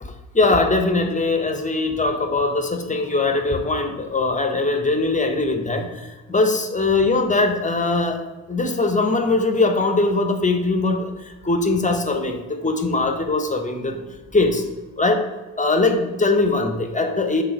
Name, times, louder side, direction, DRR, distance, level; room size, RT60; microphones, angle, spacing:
voice 1, 0.0-8.2 8.5-14.0 14.3-14.6 15.0-15.2 15.6-17.4, left 3 dB, 15° left, 5 dB, 1.0 m, -21 dB
6.3 x 4.0 x 4.5 m, 1.1 s
figure-of-eight pair, 40°, 48 cm